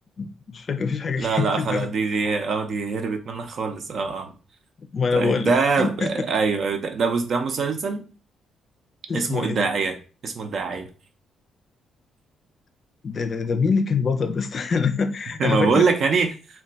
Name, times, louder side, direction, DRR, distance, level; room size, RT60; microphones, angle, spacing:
voice 1, 0.2-1.9 4.9-6.1 9.1-9.6 13.0-15.9, left 5 dB, 45° left, 0.4 m, -25 dB
voice 2, 1.2-4.3 5.1-8.0 9.1-10.0 10.2-10.9 15.4-16.4, right 4 dB, 55° right, 0.5 m, -24 dB
2.3 x 2.2 x 3.9 m
cardioid pair, 90°, 0 cm